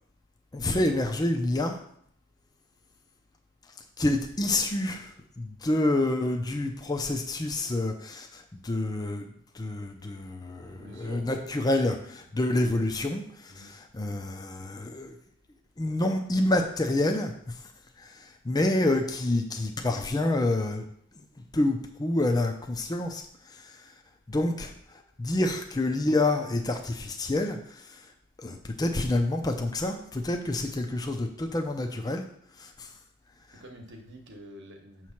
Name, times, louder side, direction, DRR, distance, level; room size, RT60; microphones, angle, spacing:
voice 1, 0.5-1.8 4.0-5.1 5.4-9.3 9.5-15.1 15.8-17.3 18.0-20.8 21.5-23.2 23.5-23.8 24.3-24.7 25.2-27.9 28.4-32.2 32.6-32.9, left 2 dB, 20° left, 4 dB, 0.5 m, -28 dB
voice 2, 10.6-11.4 12.2-12.5 13.5-13.7 33.6-35.1, right 1 dB, 55° right, 3 dB, 1.1 m, -47 dB
7.2 x 3.1 x 5.8 m, 0.67 s
head